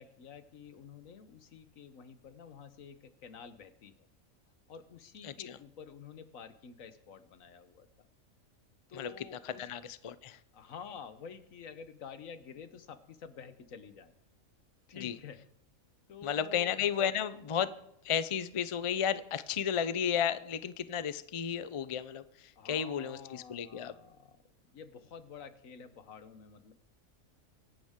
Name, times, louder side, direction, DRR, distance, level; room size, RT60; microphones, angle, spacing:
voice 1, 0.0-4.1 4.7-8.1 8.9-9.7 10.5-14.1 14.9-15.4 16.1-16.9 22.6-24.4 24.7-26.7, left 6 dB, 80° left, 11 dB, 1.5 m, -50 dB
voice 2, 5.2-5.6 8.9-10.4 15.0-15.2 16.2-17.7 18.0-23.9, left 8 dB, 40° left, 14 dB, 0.4 m, -33 dB
23.5 x 12.0 x 3.7 m, 0.77 s
omnidirectional pair, 1.4 m